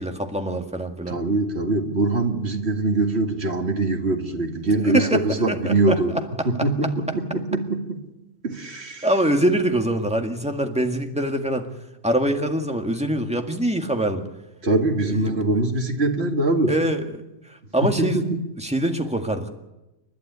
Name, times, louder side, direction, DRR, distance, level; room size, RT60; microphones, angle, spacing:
voice 1, 0.0-1.2 4.9-6.0 9.0-11.7 12.0-14.2 15.3-15.4 16.7-17.1 17.7-18.2 18.6-19.5, right 1 dB, 5° right, 4 dB, 1.9 m, -23 dB
voice 2, 1.1-6.2 6.4-8.0 8.4-9.1 14.6-16.7 18.0-18.4, right 2 dB, 60° right, 4 dB, 2.5 m, -23 dB
29.5 x 11.5 x 9.6 m, 0.96 s
omnidirectional pair, 1.2 m